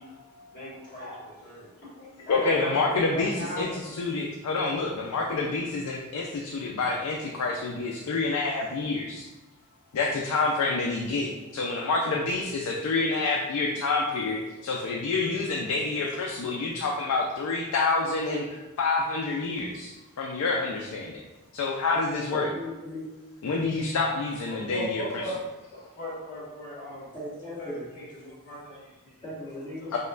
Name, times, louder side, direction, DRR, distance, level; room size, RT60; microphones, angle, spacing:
voice 1, 0.0-0.6 2.3-3.7 4.0-9.3 9.9-21.2 21.5-22.5 23.4-25.0 29.9-30.0, left 3 dB, 80° left, -1 dB, 0.4 m, -28 dB
voice 2, 0.5-4.2 5.4-5.5 24.4-25.6 25.9-27.1 27.6-29.1 29.8-29.9, equal, 45° left, -6 dB, 1.5 m, -38 dB
voice 3, 22.3-23.1 27.1-27.9 29.2-30.0, left 1 dB, 20° left, -8 dB, 1.2 m, -38 dB
5.2 x 2.2 x 2.4 m, 1.1 s
head